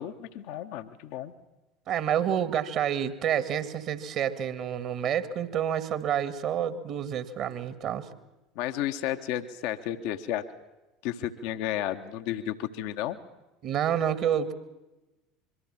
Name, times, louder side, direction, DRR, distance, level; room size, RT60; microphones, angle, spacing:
voice 1, 0.0-1.3 8.5-10.4 11.0-13.2, left 12 dB, 55° left, 8 dB, 1.0 m, -32 dB
voice 2, 1.9-8.1 13.6-14.5, right 9 dB, 45° right, 13 dB, 1.9 m, -28 dB
25.0 x 23.0 x 7.5 m, 1.0 s
figure-of-eight pair, 70°, 0 cm